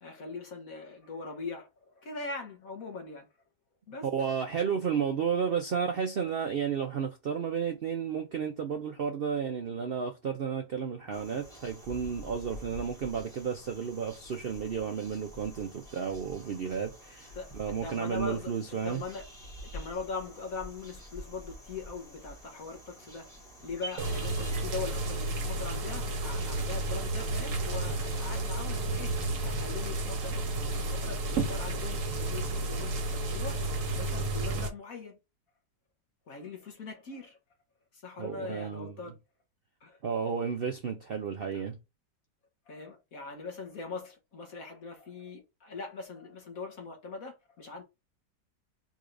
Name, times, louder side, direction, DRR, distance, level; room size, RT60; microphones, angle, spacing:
voice 1, 0.0-3.3 3.9-4.1 17.3-18.5 18.8-19.3 19.7-23.3 23.6-33.6 33.9-35.2 36.3-37.4 37.9-39.1 39.8-40.0 41.5-41.6 42.7-47.8, left 4 dB, 60° left, 1.5 m, -41 dB
voice 2, 4.1-19.0 38.2-38.9 40.0-41.8, right 7 dB, 85° right, 0.5 m, -32 dB
sound 1, 11.1-28.7, equal, ahead, 2.7 m, -48 dB
sound 2, 24.0-34.7, right 2 dB, 55° right, 1.2 m, -32 dB
4.9 x 3.9 x 2.6 m
omnidirectional pair, 1.8 m